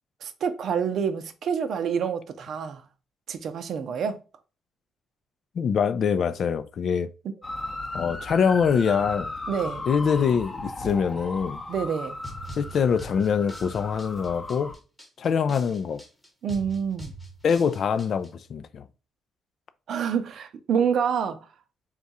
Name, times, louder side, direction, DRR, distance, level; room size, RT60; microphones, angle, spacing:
voice 1, 0.2-2.8 3.3-4.2 7.2-7.3 9.5-9.8 11.7-12.2 16.4-17.1 19.9-21.4, right 7 dB, 65° right, 0.5 m, -27 dB
voice 2, 5.6-7.1 7.9-9.3 9.9-11.6 12.6-14.8 15.2-16.0 17.4-18.8, left 6 dB, 55° left, 0.3 m, -24 dB
sound 1, 7.4-14.8, left 2 dB, 25° left, 0.7 m, -36 dB
sound 2, 12.2-18.3, right 1 dB, 5° left, 1.0 m, -43 dB
3.6 x 2.4 x 4.1 m
cardioid pair, 90°, 0 cm